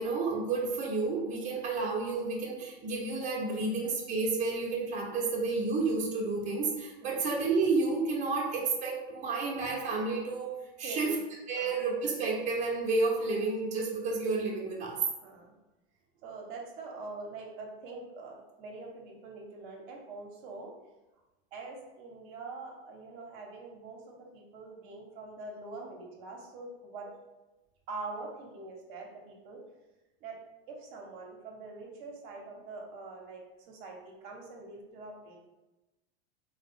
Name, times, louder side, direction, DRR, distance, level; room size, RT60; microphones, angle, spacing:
voice 1, 0.0-11.2 11.5-15.0, right 3 dB, 25° right, -3 dB, 0.7 m, -31 dB
voice 2, 10.8-11.2 11.6-11.7 15.2-15.5 16.2-20.7 21.5-27.1 27.9-29.6 30.2-30.4 30.7-33.4 33.7-35.4, right 3 dB, 55° right, 0 dB, 0.8 m, -44 dB
3.1 x 2.0 x 3.5 m, 1.0 s
supercardioid pair, 125°, 31 cm